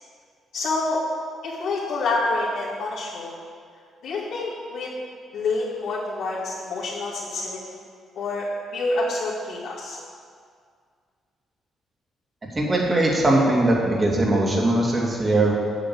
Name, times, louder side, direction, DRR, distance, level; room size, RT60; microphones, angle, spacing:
voice 1, 0.5-1.0 1.4-3.4 4.0-4.9 5.3-7.8 8.1-8.5 8.7-10.0, left 3 dB, 80° left, -9 dB, 2.4 m, -27 dB
voice 2, 12.5-15.5, right 1 dB, 25° right, -2 dB, 2.5 m, -20 dB
8.9 x 6.5 x 8.5 m, 2.1 s
cardioid pair, 90°, 0 cm